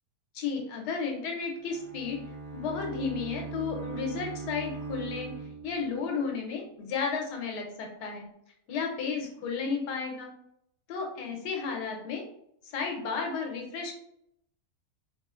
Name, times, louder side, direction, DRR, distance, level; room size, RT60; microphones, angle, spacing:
voice 1, 0.3-2.2 2.5-5.3 5.6-8.3 8.7-10.3 10.9-12.2 12.6-13.9, left 5 dB, 80° left, 2 dB, 1.3 m, -33 dB
Bowed string instrument, 1.5-6.2, right 4 dB, 60° right, 0.6 m, -40 dB
3.0 x 2.4 x 2.4 m, 0.73 s
omnidirectional pair, 1.7 m